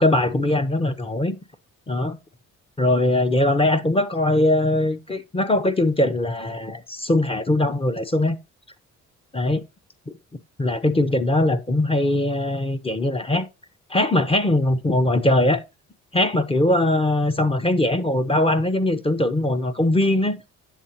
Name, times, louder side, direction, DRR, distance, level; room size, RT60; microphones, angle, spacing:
voice 1, 0.0-1.4 1.9-2.2 2.8-8.4 9.3-9.6 10.6-13.5 13.9-15.6 16.1-20.4, left 1 dB, 20° left, 0.8 m, -21 dB
7.7 x 7.3 x 2.8 m
cardioid pair, 90°, 30 cm